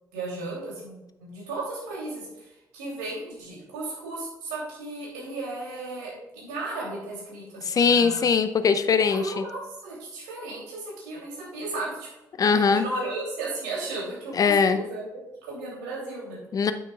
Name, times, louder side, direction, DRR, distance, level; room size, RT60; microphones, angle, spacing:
voice 1, 0.1-8.3 9.1-12.1 12.4-16.4, right 2 dB, 70° right, -4 dB, 3.1 m, -35 dB
voice 2, 7.6-9.4 12.4-12.8 14.4-14.8 16.5-16.7, left 5 dB, 40° left, 11 dB, 0.6 m, -21 dB
9.7 x 9.1 x 2.4 m, 0.96 s
figure-of-eight pair, 45°, 10 cm